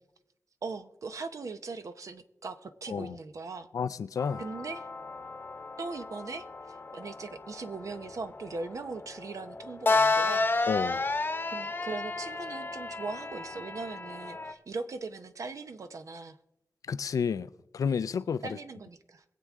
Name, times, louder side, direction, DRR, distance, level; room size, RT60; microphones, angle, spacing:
voice 1, 0.6-3.7 4.4-4.9 5.8-10.5 11.5-16.4 18.4-19.2, right 4 dB, 70° right, 0.9 m, -39 dB
voice 2, 3.7-4.4 10.7-11.0 16.9-18.5, left 6 dB, 90° left, 0.4 m, -31 dB
sound 1, 4.2-14.5, left 3 dB, 40° left, 0.9 m, -32 dB
22.0 x 7.7 x 3.6 m
cardioid pair, 65°, 6 cm